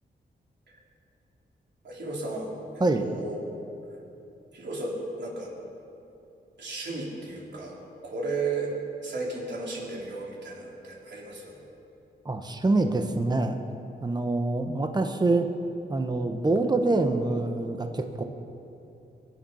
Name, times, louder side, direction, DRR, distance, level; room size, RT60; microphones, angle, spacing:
voice 1, 1.8-2.5 3.0-3.5 4.5-5.5 6.6-8.7 9.0-11.6, right 3 dB, 70° right, -3 dB, 3.8 m, -34 dB
voice 2, 12.2-13.6 14.0-15.5 15.9-18.2, right 2 dB, 20° right, 6 dB, 1.1 m, -25 dB
24.0 x 9.2 x 5.6 m, 2.9 s
cardioid pair, 90°, 19 cm